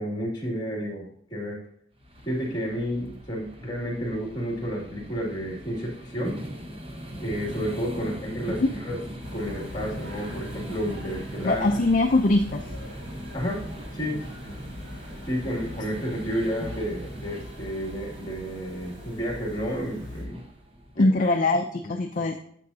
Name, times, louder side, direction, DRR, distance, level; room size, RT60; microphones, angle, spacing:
voice 1, 0.0-1.6 2.3-6.4 7.2-9.0 9.3-11.8 13.3-13.6 13.9-14.3 15.3-20.4 21.0-21.1 21.8-22.3, equal, 25° left, -2 dB, 2.4 m, -31 dB
sound 1, 2.0-21.1, equal, 30° right, 1.1 m, -40 dB
sound 2, 9.2-20.2, left 1 dB, 70° right, 2.9 m, -44 dB
voice 2, 11.4-12.6 21.0-22.4, left 2 dB, 40° left, 3 dB, 0.5 m, -22 dB
9.8 x 7.6 x 2.8 m, 0.66 s
head